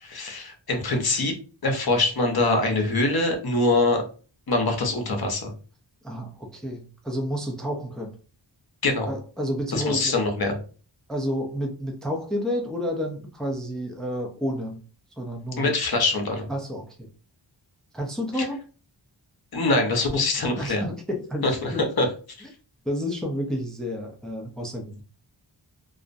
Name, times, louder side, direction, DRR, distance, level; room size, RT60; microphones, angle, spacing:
voice 1, 0.0-1.3 1.6-4.0 4.5-5.5 8.8-9.1 9.7-10.5 15.6-16.5 18.4-18.5 19.5-20.8 21.4-21.7 22.0-22.1, left 2 dB, 55° left, 4 dB, 0.7 m, -23 dB
voice 2, 6.0-8.1 9.1-10.2 11.1-14.8 15.2-15.7 16.5-17.1 17.9-18.6 20.6-21.9 22.4-22.5 22.8-25.0, equal, ahead, 1 dB, 0.4 m, -30 dB
2.4 x 2.0 x 2.5 m, 0.38 s
wide cardioid pair, 60°, 45 cm